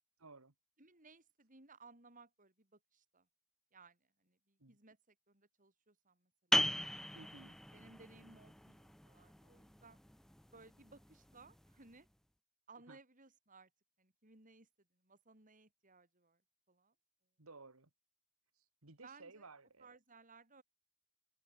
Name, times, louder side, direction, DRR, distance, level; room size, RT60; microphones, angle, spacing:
voice 1, 0.2-0.5 4.6-4.8 7.1-7.6 12.9-13.0 17.4-17.9 18.5-20.0, right 3 dB, 85° right, 2.5 m, -57 dB
voice 2, 0.8-3.3 3.7-6.7 7.7-10.0 10.5-12.1 12.7-13.7 14.0-16.4 16.7-16.9 19.0-19.5 19.8-20.6, right 3 dB, 40° right, 4.8 m, -62 dB
sound 1, 6.5-11.9, left 1 dB, ahead, 0.4 m, -39 dB
head